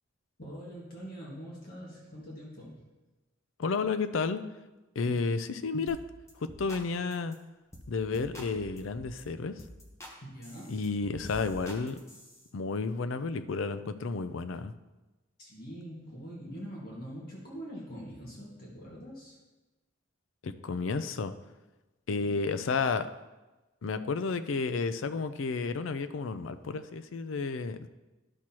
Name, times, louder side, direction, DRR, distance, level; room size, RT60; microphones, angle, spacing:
voice 1, 0.4-2.8 10.2-10.8 15.4-19.4 22.2-22.4, equal, 50° left, -5 dB, 1.8 m, -44 dB
voice 2, 3.6-4.4 5.0-6.0 6.4-7.4 7.9-9.6 10.7-12.0 12.5-14.7 20.4-21.3 22.1-23.1 23.8-27.9, left 4 dB, 70° left, 11 dB, 0.4 m, -31 dB
sound 1, 5.9-6.0 6.3-6.8 7.1-7.3 7.7-7.9 8.1-9.2 9.6-10.1 10.4-12.4, equal, 15° left, 1.0 m, -47 dB
11.5 x 6.1 x 2.9 m, 1.1 s
head